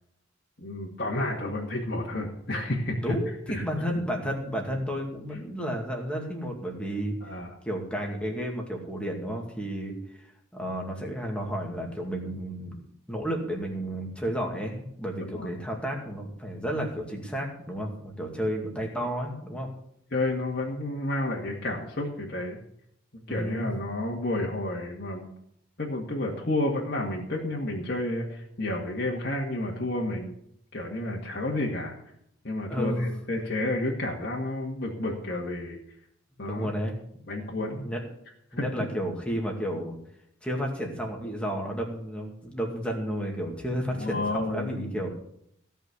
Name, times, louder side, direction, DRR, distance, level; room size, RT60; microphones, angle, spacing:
voice 1, 0.6-3.1 3.5-3.6 7.2-7.5 15.3-15.5 18.2-18.3 20.1-22.6 23.3-25.3 25.8-30.4 30.7-32.0 32.4-35.8 36.4-36.7 37.3-37.9 38.6-38.7 43.9-45.1, left 1 dB, 50° left, -4 dB, 2.0 m, -31 dB
voice 2, 3.0-7.1 7.7-10.2 10.5-12.8 13.1-19.7 23.3-23.7 32.7-33.1 36.4-36.9 37.6-38.0 38.5-40.0 40.4-45.1, equal, 5° left, 0 dB, 2.2 m, -32 dB
16.5 x 5.7 x 8.3 m, 0.74 s
head